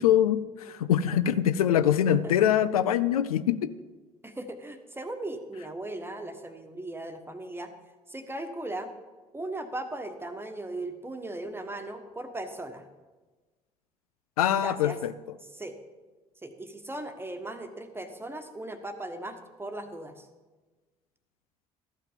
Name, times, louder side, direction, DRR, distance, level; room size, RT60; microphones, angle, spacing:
voice 1, 0.0-3.8 14.4-15.1, left 10 dB, 75° left, 14 dB, 0.4 m, -24 dB
voice 2, 4.2-7.7 8.1-8.9 9.3-12.9 14.6-15.0 15.5-15.8 16.4-20.3, right 2 dB, 10° right, 7 dB, 1.3 m, -38 dB
13.5 x 5.7 x 7.3 m, 1.3 s
figure-of-eight pair, 50°, 19 cm